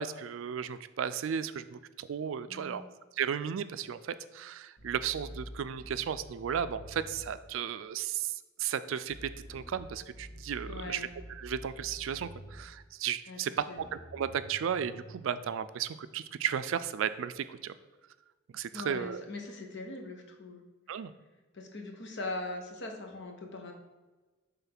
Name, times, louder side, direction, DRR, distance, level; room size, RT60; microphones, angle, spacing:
voice 1, 0.0-2.8 3.2-17.7 18.5-19.3 20.9-21.1, right 8 dB, 70° right, 13 dB, 0.3 m, -35 dB
voice 2, 2.5-2.9 10.7-11.1 13.3-13.4 13.7-13.9 18.7-20.6 21.5-23.7, left 2 dB, 60° left, 3 dB, 1.1 m, -41 dB
sound 1, 4.8-7.4 9.1-12.7 13.8-15.4, equal, 45° left, 1.9 m, -48 dB
5.7 x 3.7 x 5.9 m, 1.3 s
head